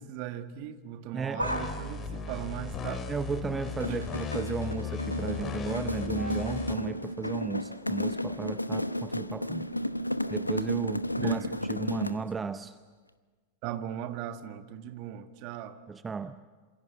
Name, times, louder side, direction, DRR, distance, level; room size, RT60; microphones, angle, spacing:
voice 1, 0.0-3.1 3.9-4.1 11.2-11.7 13.6-15.8, right 10 dB, 45° right, 1.7 m, -38 dB
voice 2, 1.1-1.5 3.1-9.7 10.3-12.8 15.9-16.4, right 5 dB, 15° right, 0.7 m, -34 dB
sound 1, 1.3-4.0 4.4-4.8 5.1-9.0 9.4-9.5 10.5-10.6, equal, 90° right, 1.9 m, -42 dB
sound 2, 1.4-6.7, left 6 dB, 25° left, 2.3 m, -37 dB
sound 3, 3.7-12.3, left 1 dB, 85° left, 0.9 m, -33 dB
27.5 x 27.0 x 7.5 m
figure-of-eight pair, 90°, 0 cm